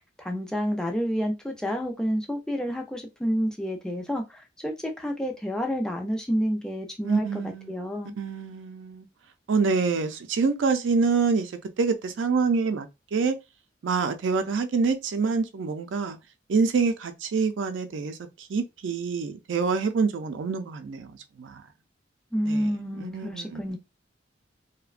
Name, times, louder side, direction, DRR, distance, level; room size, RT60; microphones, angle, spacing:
voice 1, 0.2-7.4 7.7-8.1 22.3-23.8, equal, 5° left, 0.4 m, -29 dB
voice 2, 7.0-7.8 8.2-9.1 9.5-11.5 11.8-13.4 13.8-16.2 16.5-18.2 18.5-21.6 22.5-23.6, right 4 dB, 90° right, 0.4 m, -26 dB
2.7 x 2.1 x 2.4 m
head